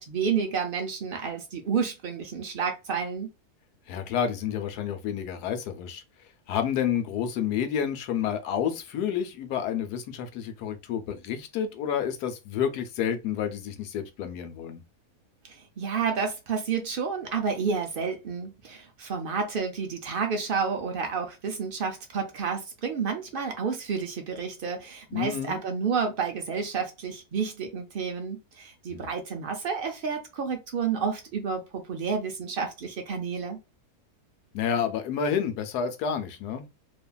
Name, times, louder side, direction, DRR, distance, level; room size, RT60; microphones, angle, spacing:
voice 1, 0.0-3.3 15.5-33.6, right 6 dB, 75° right, 0.5 m, -30 dB
voice 2, 3.9-6.0 6.5-14.8 25.1-25.6 28.9-29.1 34.5-36.6, left 8 dB, 85° left, 1.2 m, -29 dB
2.8 x 2.4 x 2.2 m
omnidirectional pair, 1.6 m